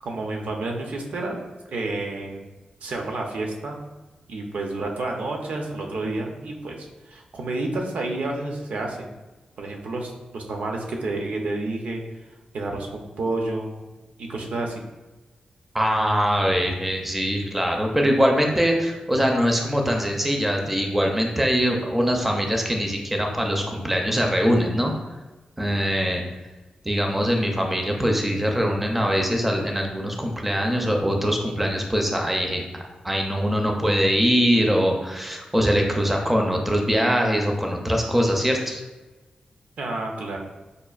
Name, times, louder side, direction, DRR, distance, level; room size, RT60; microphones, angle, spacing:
voice 1, 0.0-2.4 2.8-3.8 4.3-9.1 9.6-12.0 12.5-13.8 14.2-14.9 39.8-40.4, right 2 dB, 75° right, 1 dB, 0.5 m, -30 dB
voice 2, 15.7-24.9 25.6-26.2 26.8-32.6 33.0-38.8, equal, 5° right, 1 dB, 0.4 m, -22 dB
5.0 x 2.4 x 2.3 m, 1.1 s
wide cardioid pair, 130°, 2 cm